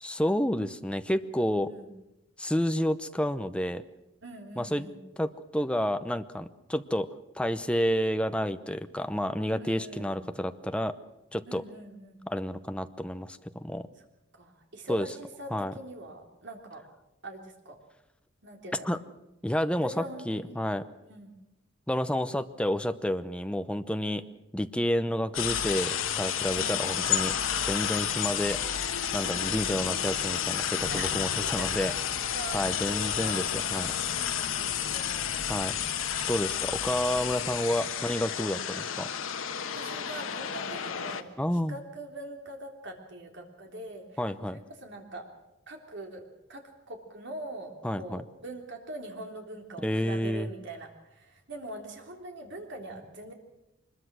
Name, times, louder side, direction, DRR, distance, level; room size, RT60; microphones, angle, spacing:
voice 1, 0.0-1.7 2.4-3.8 4.6-4.9 5.2-7.1 7.4-11.0 11.3-11.6 12.3-13.9 14.9-15.1 15.5-15.7 18.8-19.0 19.4-20.8 21.9-24.2 24.5-27.3 27.6-28.6 29.1-33.9 35.5-35.7 36.3-39.1 41.4-41.8 44.2-44.6 47.8-48.2 49.8-50.5, equal, 5° left, 10 dB, 0.8 m, -30 dB
voice 2, 4.2-5.0 9.6-10.2 11.5-12.2 14.3-16.8 17.2-17.8 18.4-19.0 19.7-20.6 21.1-21.3 24.0-24.2 26.5-26.9 29.2-30.0 30.9-31.7 32.3-33.9 34.6-35.4 38.5-38.7 39.7-41.3 41.7-45.3 45.7-46.2 46.5-53.3, right 1 dB, 60° right, 2 dB, 3.5 m, -43 dB
sound 1, 25.3-41.2, left 9 dB, 85° left, 1.3 m, -31 dB
23.5 x 21.5 x 6.3 m, 0.91 s
head